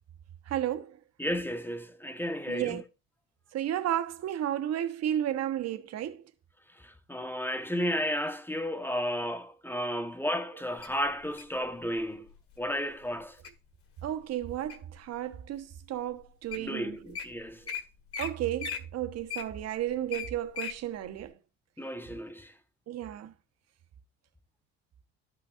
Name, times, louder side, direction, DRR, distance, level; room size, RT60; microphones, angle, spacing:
voice 1, 0.5-1.0 2.5-2.8 3.5-6.2 14.0-17.0 18.2-21.4 22.9-23.3, right 11 dB, 55° right, 1.0 m, -33 dB
voice 2, 1.2-2.8 6.8-12.3 12.6-13.4 16.6-17.6 21.8-22.5, equal, 5° left, 0.9 m, -33 dB
Wild animals, 10.8-11.6 12.3-12.6 13.0-13.5 14.0-15.0 15.5-15.6 16.2-16.3 16.5-16.7 16.9-17.2 17.7-17.8 18.1-18.3 18.6-20.8 21.2-21.3, left 7 dB, 45° left, 1.9 m, -37 dB
13.0 x 5.6 x 2.4 m
hypercardioid pair, 60°, 31 cm